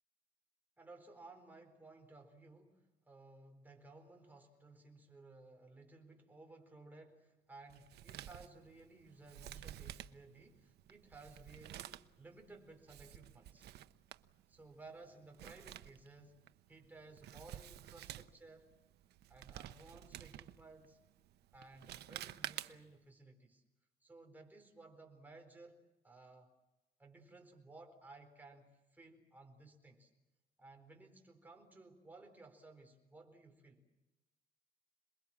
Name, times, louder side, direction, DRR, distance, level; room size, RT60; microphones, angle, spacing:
voice 1, 0.8-13.7 14.5-16.4 16.7-18.7 19.3-21.0 21.5-23.6 24.0-26.5 27.0-30.1 30.6-33.8, right 3 dB, 10° right, 2 dB, 4.2 m, -58 dB
Male speech man speaking, 7.7-23.0, right 12 dB, 85° right, 0.9 m, -52 dB
27.5 x 22.0 x 7.5 m, 1.0 s
cardioid pair, 165°, 17 cm